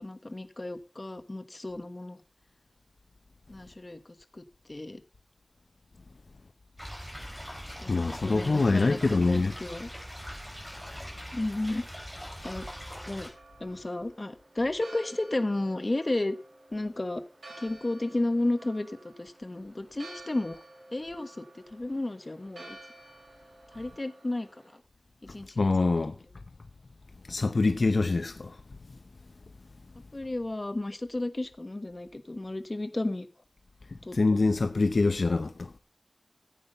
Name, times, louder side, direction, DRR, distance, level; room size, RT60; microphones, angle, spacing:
voice 1, 0.0-2.2 3.5-4.0 4.3-4.4 4.7-5.0 7.8-9.9 11.3-11.8 12.4-12.7 13.1-13.3 13.6-16.4 16.7-17.2 17.6-20.6 20.9-21.4 21.7-22.8 23.7-24.5 25.3-25.9 30.1-33.3 34.0-34.2, left 2 dB, 40° left, 1.4 m, -33 dB
sound 1, 6.8-13.3, equal, 5° right, 5.4 m, -42 dB
voice 2, 7.9-9.5 25.6-26.1 27.3-28.5 34.1-35.7, left 3 dB, 70° left, 0.8 m, -25 dB
Church bell, 12.6-24.8, right 2 dB, 90° right, 6.2 m, -52 dB
14.0 x 8.8 x 5.6 m
wide cardioid pair, 60°, 0 cm